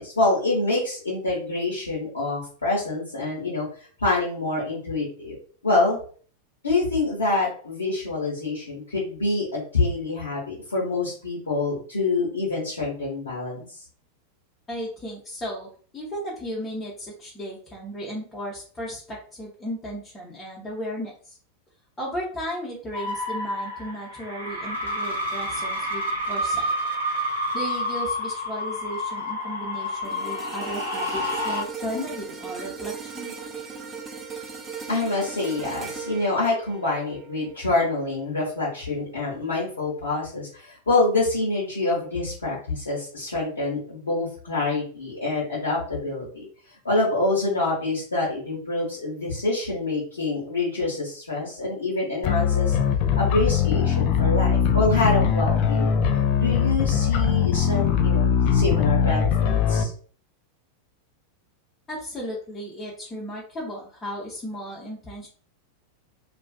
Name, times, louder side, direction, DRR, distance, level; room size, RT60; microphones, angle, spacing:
voice 1, 0.0-3.7 4.0-5.4 5.6-6.0 6.6-13.7 34.9-46.5 46.8-52.8 53.2-55.9 56.3-59.9, left 2 dB, 70° left, -8 dB, 0.9 m, -26 dB
voice 2, 14.7-21.4 22.0-26.7 27.5-33.3 61.9-65.3, equal, 20° left, -4 dB, 0.7 m, -35 dB
sound 1, 22.9-31.6, equal, 70° right, 0.7 m, -29 dB
sound 2, 30.0-38.4 38.8-39.0, right 6 dB, 20° right, 0.4 m, -38 dB
sound 3, 52.2-59.8, left 7 dB, 45° left, 0.3 m, -21 dB
2.4 x 2.3 x 2.3 m, 0.44 s
figure-of-eight pair, 90°, 0 cm